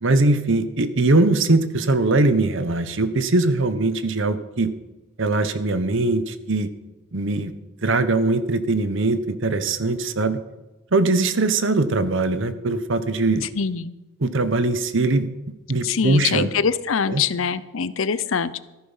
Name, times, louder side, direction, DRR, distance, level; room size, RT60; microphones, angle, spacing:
voice 1, 0.0-4.7 5.2-6.7 7.1-7.5 7.8-10.4 10.9-13.5 14.2-15.3 15.7-16.5 17.1-17.2, right 2 dB, 60° right, 12 dB, 1.0 m, -21 dB
voice 2, 13.5-13.9 15.8-18.6, left 6 dB, 65° left, 16 dB, 0.6 m, -23 dB
14.0 x 10.0 x 5.7 m, 1.1 s
head